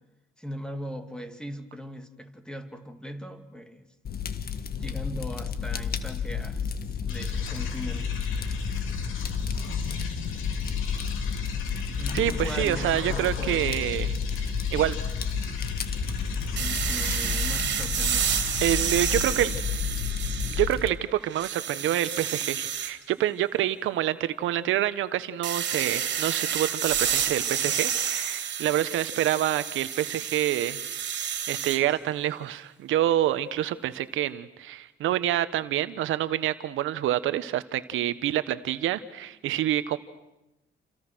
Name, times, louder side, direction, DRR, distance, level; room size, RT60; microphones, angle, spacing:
voice 1, 0.4-3.9 4.7-6.7 7.0-8.2 12.0-14.3 16.6-18.3, equal, 5° left, 2.7 m, -39 dB
Fire, 4.0-20.9, left 7 dB, 50° left, 1.7 m, -31 dB
sound 1, 7.1-17.3, left 3 dB, 90° left, 3.3 m, -36 dB
voice 2, 12.1-15.0 18.6-19.5 20.6-30.8 31.2-40.0, right 12 dB, 85° right, 1.3 m, -27 dB
sound 2, 16.6-20.8 21.2-22.9 25.4-31.8, right 8 dB, 60° right, 3.0 m, -30 dB
29.5 x 27.5 x 6.4 m
cardioid pair, 90°, 20 cm